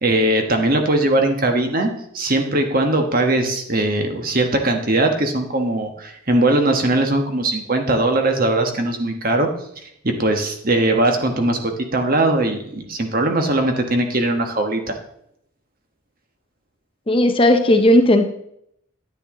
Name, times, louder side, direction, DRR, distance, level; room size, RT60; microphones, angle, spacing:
voice 1, 0.0-9.5 10.0-15.0, right 2 dB, 45° right, 4 dB, 1.3 m, -20 dB
voice 2, 17.1-18.3, left 1 dB, 25° left, 7 dB, 0.6 m, -14 dB
10.0 x 9.2 x 3.8 m, 0.73 s
head